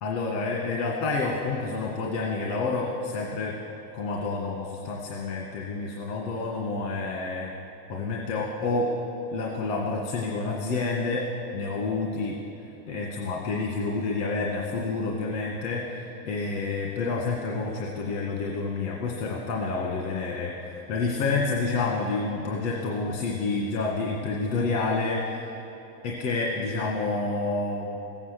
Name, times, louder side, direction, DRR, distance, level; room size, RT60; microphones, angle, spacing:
voice 1, 0.0-3.6 3.9-7.5 7.9-8.9 9.3-12.4 12.9-25.5 26.0-28.0, left 3 dB, 75° left, -1 dB, 2.0 m, -29 dB
16.5 x 8.8 x 6.8 m, 2.8 s
supercardioid pair, 150°, 47 cm